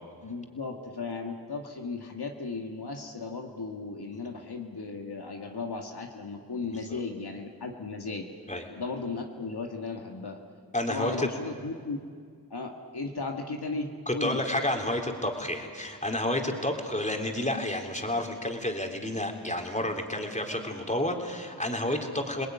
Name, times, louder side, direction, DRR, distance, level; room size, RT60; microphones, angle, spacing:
voice 1, 0.2-8.3 8.8-10.4 10.9-12.0 12.5-14.4, left 3 dB, 75° left, 2 dB, 1.9 m, -36 dB
voice 2, 10.7-11.3 14.1-22.5, left 1 dB, 20° left, 2 dB, 3.6 m, -30 dB
28.5 x 19.5 x 9.5 m, 2.1 s
cardioid pair, 40°, 39 cm